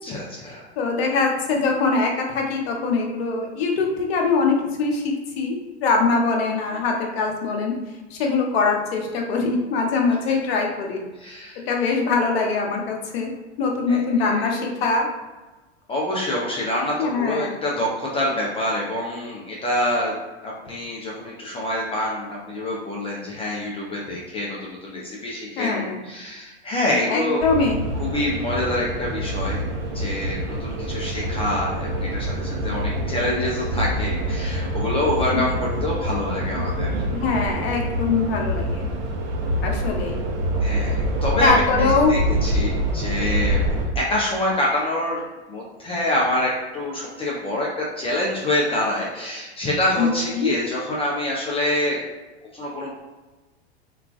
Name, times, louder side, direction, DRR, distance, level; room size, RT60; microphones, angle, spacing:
voice 1, 0.0-0.7 6.7-6.8 11.1-11.6 13.9-14.5 15.9-27.4 28.0-29.7 29.9-37.0 40.6-43.6 43.9-45.2 45.5-52.0 52.5-52.9, left 1 dB, 15° left, -4 dB, 0.4 m, -26 dB
voice 2, 0.8-7.7 8.1-11.0 11.7-15.1 17.0-17.5 25.6-26.0 27.1-27.8 37.1-38.9 39.6-40.2 41.4-42.2 50.0-50.5, left 4 dB, 65° left, 1 dB, 0.7 m, -22 dB
sound 1, 27.4-43.9, right 1 dB, 50° right, 0.7 m, -26 dB
2.3 x 2.3 x 2.3 m, 1.2 s
hypercardioid pair, 90°, 34 cm